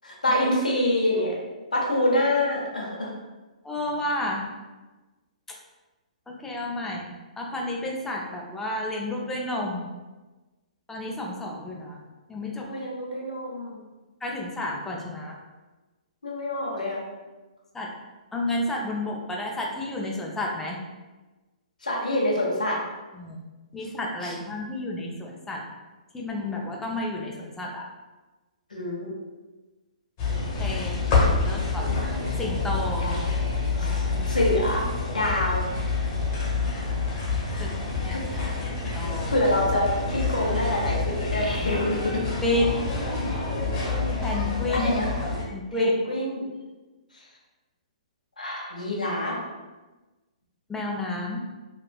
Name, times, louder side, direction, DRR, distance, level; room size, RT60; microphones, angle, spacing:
voice 1, 0.0-1.4 1.7-3.1 12.7-13.8 16.2-17.0 21.8-22.8 24.2-24.3 28.7-29.2 33.0-33.3 33.7-34.9 35.1-35.7 37.5-37.6 38.0-38.2 39.3-42.2 44.7-45.1 45.7-46.4 48.4-49.4, left 1 dB, 85° left, -2 dB, 0.9 m, -26 dB
voice 2, 3.6-4.5 6.4-9.9 10.9-12.0 12.3-12.7 14.2-15.4 17.7-17.9 18.3-20.8 23.1-23.4 23.7-25.6 26.1-27.8 30.6-31.0 31.3-33.1 37.6-38.3 39.0-39.4 42.4-42.6 44.2-44.9 45.5-45.9 50.7-51.4, left 1 dB, 10° left, -2 dB, 0.4 m, -31 dB
sound 1, 30.2-45.4, left 3 dB, 35° left, 1.0 m, -27 dB
3.2 x 2.4 x 2.2 m, 1.2 s
figure-of-eight pair, 125°, 4 cm